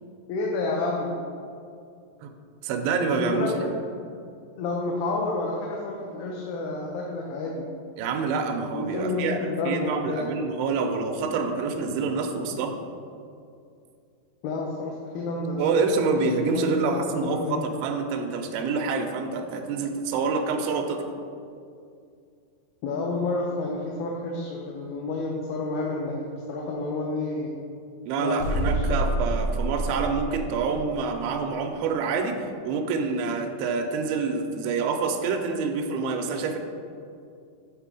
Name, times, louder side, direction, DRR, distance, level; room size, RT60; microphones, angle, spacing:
voice 1, 0.3-1.2 3.2-3.7 4.6-7.7 8.7-10.3 14.4-16.0 16.4-17.6 22.8-26.2 26.5-27.5 28.2-28.4 28.6-28.8, left 3 dB, 85° left, -1 dB, 2.5 m, -29 dB
voice 2, 2.6-3.5 8.0-12.8 15.6-21.1 28.1-36.6, right 4 dB, 85° right, 4 dB, 2.4 m, -27 dB
sound 1, 28.4-31.1, right 1 dB, 60° left, 1.6 m, -28 dB
8.1 x 3.7 x 4.8 m, 2.4 s
omnidirectional pair, 4.3 m